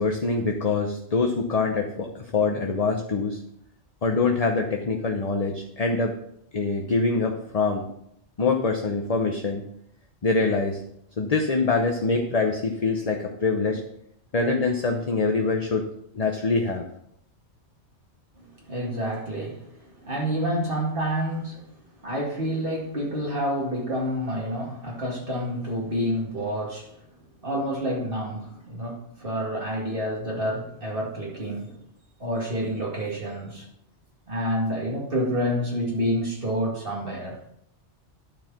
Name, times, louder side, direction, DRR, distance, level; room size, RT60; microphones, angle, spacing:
voice 1, 0.0-3.4 4.0-6.2 6.5-7.8 8.4-9.6 10.2-10.8 11.2-13.8 14.3-15.9 16.1-16.8, left 4 dB, 35° left, 2 dB, 0.8 m, -24 dB
voice 2, 18.4-21.7 22.0-26.9 27.4-31.8 32.2-33.7 34.3-37.4, equal, 50° right, -3 dB, 2.2 m, -28 dB
12.0 x 4.7 x 6.0 m, 0.75 s
omnidirectional pair, 1.2 m